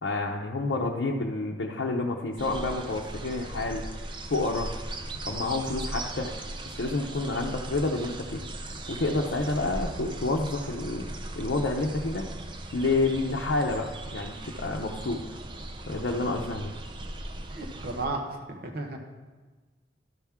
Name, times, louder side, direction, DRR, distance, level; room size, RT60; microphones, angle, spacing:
voice 1, 0.0-4.0 4.3-4.7 5.3-6.3 6.8-8.4 8.9-11.1 11.4-12.3 12.7-15.2 15.9-16.7, left 2 dB, 75° left, -2 dB, 0.7 m, -29 dB
sound 1, 2.4-18.1, right 1 dB, 25° right, 0.5 m, -38 dB
voice 2, 17.5-19.0, right 2 dB, 55° right, 2 dB, 0.9 m, -34 dB
12.5 x 5.8 x 3.6 m, 1.3 s
head